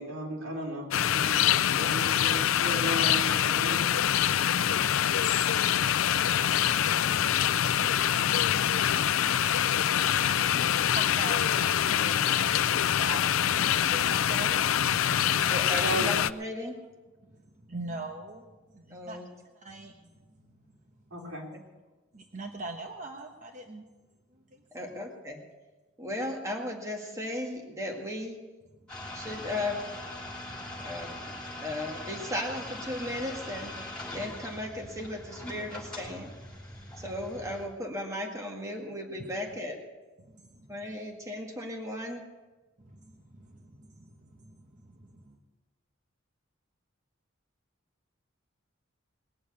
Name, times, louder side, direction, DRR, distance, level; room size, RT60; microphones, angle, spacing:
voice 1, 0.0-4.0 15.8-16.1 21.1-21.5, right 1 dB, 90° right, -2 dB, 3.6 m, -35 dB
sound 1, 0.9-16.3, left 10 dB, 75° left, 0.4 m, -25 dB
voice 2, 10.5-12.4 12.7-13.5 13.8-15.4 17.7-18.4 18.7-19.2 19.6-20.1 20.4-20.5 22.1-23.8 24.5-25.0 28.9-29.2 30.8-30.9 31.5-31.6 40.2-40.7 42.8-45.4, right 2 dB, 40° right, 2 dB, 1.1 m, -43 dB
voice 3, 15.5-16.8 18.9-19.3 21.5-21.6 24.7-25.4 26.0-28.4 29.1-29.9 30.8-33.8 34.1-36.3 37.0-39.8 40.7-42.2, left 1 dB, 15° right, 1 dB, 1.9 m, -36 dB
sound 2, 28.9-37.6, left 1 dB, 5° left, 5.3 m, -41 dB
20.5 x 7.1 x 8.4 m, 1.2 s
head